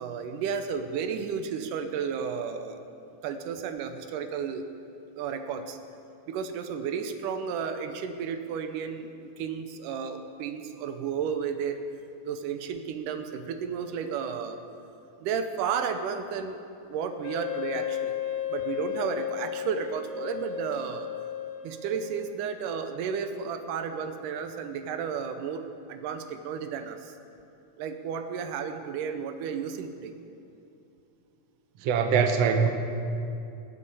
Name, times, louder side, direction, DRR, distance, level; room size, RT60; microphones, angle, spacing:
voice 1, 0.0-2.8 3.2-4.7 5.2-5.8 6.3-11.8 12.2-14.6 15.2-16.6 16.9-18.1 18.5-21.1 21.6-27.1 27.8-30.1, right 7 dB, 85° right, 8 dB, 2.4 m, -33 dB
Wind instrument woodwind instrument, 17.2-22.3, left 10 dB, 85° left, 2.5 m, -34 dB
voice 2, 31.8-32.7, right 6 dB, 65° right, 5 dB, 2.0 m, -22 dB
20.5 x 8.4 x 8.2 m, 2.7 s
omnidirectional pair, 3.6 m